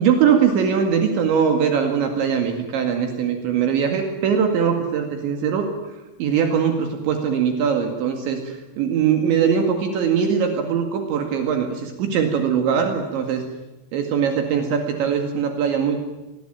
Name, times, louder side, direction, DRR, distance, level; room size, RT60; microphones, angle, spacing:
voice 1, 0.0-5.7 6.2-13.4 13.9-16.0, right 7 dB, 65° right, 4 dB, 4.3 m, -21 dB
24.5 x 20.5 x 9.1 m, 1.0 s
omnidirectional pair, 5.8 m